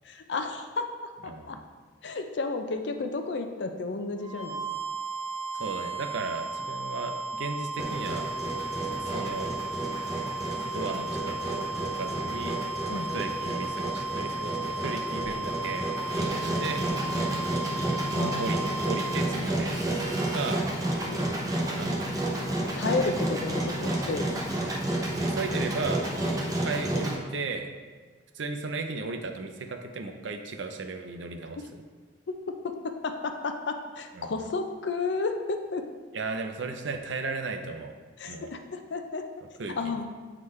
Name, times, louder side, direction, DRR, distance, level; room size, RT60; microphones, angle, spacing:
voice 1, 0.1-1.6 2.0-4.6 12.9-13.1 18.1-18.7 21.1-21.3 22.8-24.3 31.6-31.7 32.3-35.9 38.2-39.3 39.8-40.1, left 3 dB, 65° left, 6 dB, 0.5 m, -32 dB
voice 2, 1.2-1.6 5.5-8.3 9.0-9.5 10.7-12.6 12.9-15.9 16.1-16.8 18.4-20.7 21.7-22.0 25.1-26.1 26.3-27.7 28.3-31.8 34.1-34.5 36.1-37.9 38.2-38.5 39.6-40.0, right 3 dB, 75° right, 5 dB, 0.6 m, -35 dB
sound 1, 4.2-19.5, right 2 dB, 45° right, 1.6 m, -35 dB
Engine, 7.8-27.2, right 1 dB, 20° right, 0.7 m, -31 dB
7.9 x 3.7 x 3.2 m, 1.4 s
head